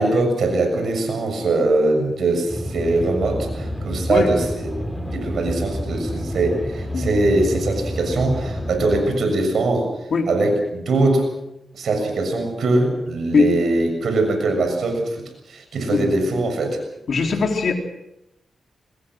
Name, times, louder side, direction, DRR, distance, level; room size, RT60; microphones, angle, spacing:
voice 1, 0.0-9.9 10.3-11.2 11.7-16.8, right 2 dB, 75° right, 4 dB, 6.9 m, -21 dB
sound 1, 2.5-9.0, equal, 5° left, 4.8 m, -29 dB
voice 2, 17.1-17.7, left 4 dB, 65° left, 3 dB, 3.9 m, -19 dB
24.0 x 20.5 x 6.4 m, 0.89 s
cardioid pair, 75°, 0 cm